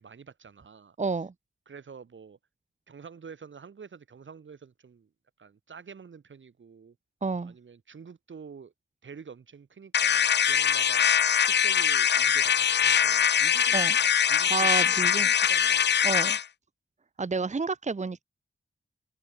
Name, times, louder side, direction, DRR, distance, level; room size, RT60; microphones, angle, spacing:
voice 1, 0.0-1.0 1.7-2.4 2.9-5.1 5.4-7.0 7.4-8.7 9.0-11.1 11.4-15.9, right 6 dB, 85° right, 6.1 m, -47 dB
voice 2, 1.0-1.3 7.2-7.5 13.7-14.0 14.2-15.3 16.0-16.4 17.2-18.2, right 4 dB, 40° right, 1.1 m, -30 dB
sound 1, 9.9-16.4, left 8 dB, 65° left, 0.4 m, -23 dB
wide cardioid pair, 100°, 19 cm